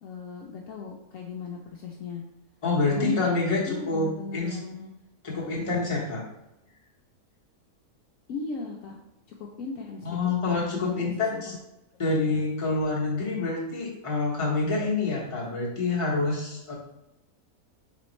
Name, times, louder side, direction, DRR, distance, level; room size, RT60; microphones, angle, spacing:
voice 1, 0.0-2.2 2.9-4.9 5.3-5.6 8.3-9.0 9.4-10.3 10.7-11.4 12.1-12.4, left 4 dB, 70° left, 0 dB, 0.9 m, -37 dB
voice 2, 2.6-4.6 5.2-6.2 10.0-11.5 12.0-16.7, left 3 dB, 25° left, -5 dB, 1.0 m, -27 dB
4.2 x 3.8 x 3.1 m, 0.91 s
omnidirectional pair, 1.6 m